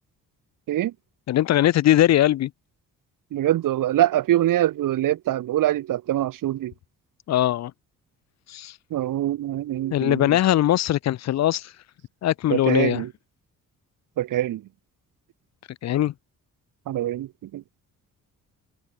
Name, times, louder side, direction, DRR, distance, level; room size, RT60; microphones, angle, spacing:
voice 1, 1.3-2.5 7.3-7.7 8.5-8.8 9.9-11.7 12.2-13.0 15.8-16.1, left 13 dB, 55° left, 0.5 m, -20 dB
voice 2, 3.3-6.7 8.9-10.4 12.5-13.1 14.2-14.6 16.9-17.6, right 13 dB, 75° right, 1.6 m, -24 dB
cardioid pair, 100°, 32 cm